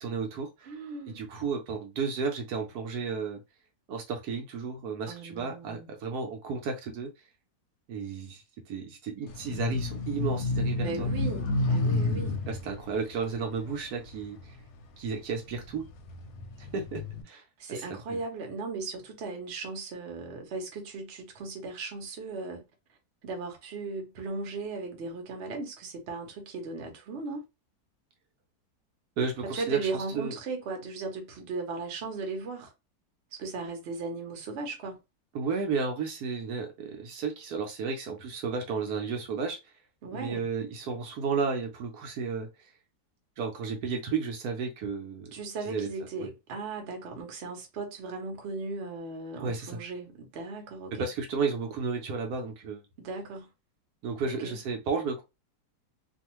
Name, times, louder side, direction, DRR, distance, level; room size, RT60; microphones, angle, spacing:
voice 1, 0.0-0.8 1.1-3.4 3.9-7.1 7.9-11.1 12.5-14.6 15.0-15.9 16.6-17.4 17.7-18.2 29.2-30.3 35.3-39.7 40.1-42.7 43.4-45.3 45.7-45.9 46.2-46.3 49.4-49.8 50.9-52.8 54.0-55.2, right 5 dB, 75° right, 1.1 m, -33 dB
voice 2, 0.7-1.2 5.1-5.9 10.8-12.4 17.6-22.6 23.2-27.4 29.4-32.7 33.3-35.0 40.0-40.4 45.3-51.1 53.0-53.5 54.2-54.6, right 3 dB, 50° right, 0.9 m, -37 dB
sound 1, 9.3-14.8 15.4-17.2, left 2 dB, 70° left, 0.9 m, -31 dB
2.6 x 2.4 x 3.0 m
omnidirectional pair, 1.7 m